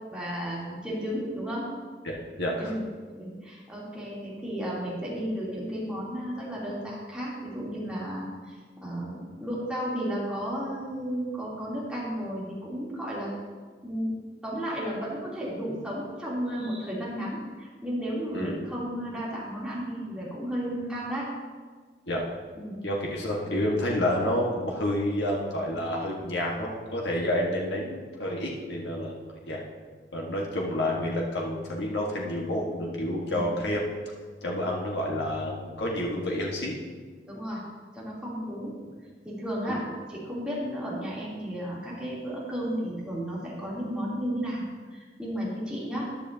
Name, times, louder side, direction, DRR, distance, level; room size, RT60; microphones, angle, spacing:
voice 1, 0.1-1.7 2.6-2.8 3.2-8.6 8.8-13.3 13.8-14.2 14.4-21.2 22.6-22.8 33.3-33.5 37.2-37.6 37.9-38.9 39.2-39.8 40.1-44.6 44.9-46.0, equal, 5° right, -8 dB, 3.1 m, -33 dB
voice 2, 2.0-2.7 18.3-18.6 22.1-22.2 22.8-29.2 29.5-29.6 30.1-33.8 34.4-36.8 39.7-39.8, left 1 dB, 85° left, -2 dB, 1.5 m, -29 dB
14.0 x 10.0 x 2.8 m, 1.5 s
head